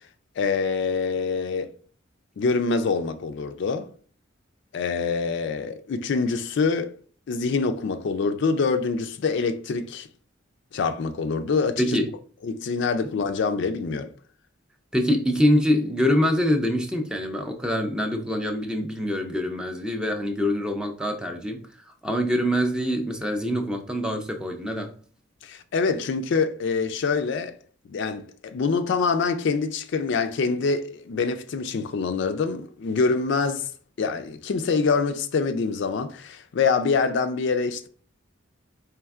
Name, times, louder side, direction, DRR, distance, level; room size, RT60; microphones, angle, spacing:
voice 1, 0.4-1.7 2.4-3.9 4.7-6.9 7.3-10.1 10.7-12.0 12.4-14.1 25.4-27.6 27.9-33.7 34.0-37.9, left 4 dB, 60° left, 0.4 m, -25 dB
voice 2, 11.8-12.1 14.9-21.6 21.9-24.9, equal, 5° right, 0.4 m, -24 dB
4.3 x 3.3 x 2.3 m
head